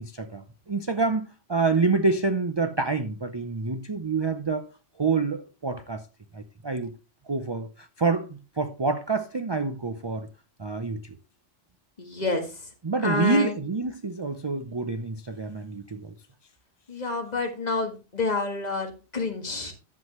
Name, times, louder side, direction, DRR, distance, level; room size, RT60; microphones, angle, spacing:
voice 1, 0.0-4.7 5.0-6.0 6.3-6.9 7.3-10.3 10.6-11.2 12.8-16.1, right 4 dB, 30° right, 0.5 m, -27 dB
voice 2, 12.0-12.4 13.0-13.6 16.9-19.7, left 3 dB, 35° left, 1.7 m, -28 dB
11.0 x 7.7 x 3.1 m
omnidirectional pair, 1.2 m